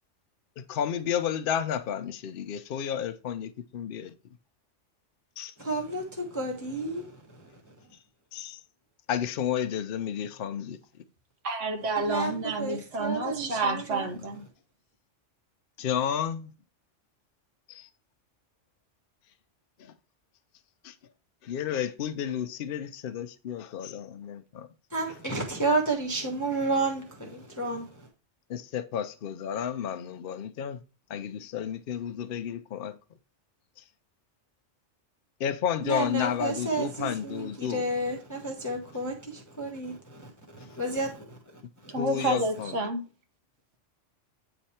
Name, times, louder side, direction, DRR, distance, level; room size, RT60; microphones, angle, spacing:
voice 1, 0.6-4.1 5.4-5.5 8.3-8.6 9.1-10.8 15.8-16.5 17.7-17.9 19.8-19.9 20.8-20.9 21.4-24.7 28.5-30.8 31.1-33.0 35.4-37.8 42.0-42.9, left 9 dB, 55° left, 0.7 m, -32 dB
voice 2, 5.6-7.5 12.0-14.1 24.9-28.1 35.8-42.4, right 2 dB, 15° left, 0.9 m, -32 dB
voice 3, 11.4-14.4 41.9-43.0, right 2 dB, 80° right, 1.5 m, -29 dB
8.8 x 3.4 x 4.2 m
omnidirectional pair, 1.2 m